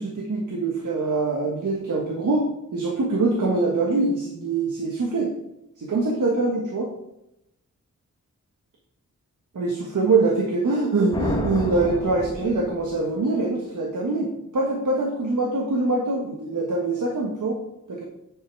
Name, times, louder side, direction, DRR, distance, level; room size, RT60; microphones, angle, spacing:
voice 1, 0.0-5.3 5.8-6.9 9.5-17.6 17.9-18.0, right 3 dB, 80° right, 0 dB, 1.6 m, -24 dB
sound 1, 11.1-13.2, left 1 dB, 15° left, 1.3 m, -30 dB
9.8 x 5.7 x 4.6 m, 0.84 s
wide cardioid pair, 110°, 31 cm